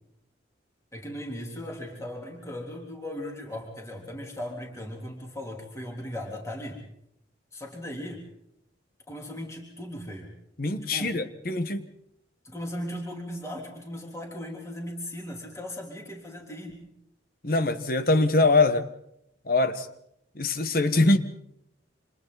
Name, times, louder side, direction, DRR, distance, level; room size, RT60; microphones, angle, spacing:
voice 1, 0.9-6.8 7.5-8.3 9.1-10.3 10.9-11.2 12.4-16.9, left 1 dB, 15° left, 0 dB, 3.6 m, -37 dB
voice 2, 10.6-11.9 17.4-18.9 19.5-19.9 20.3-21.2, left 2 dB, 50° left, 10 dB, 1.3 m, -23 dB
29.5 x 26.5 x 4.1 m, 0.76 s
head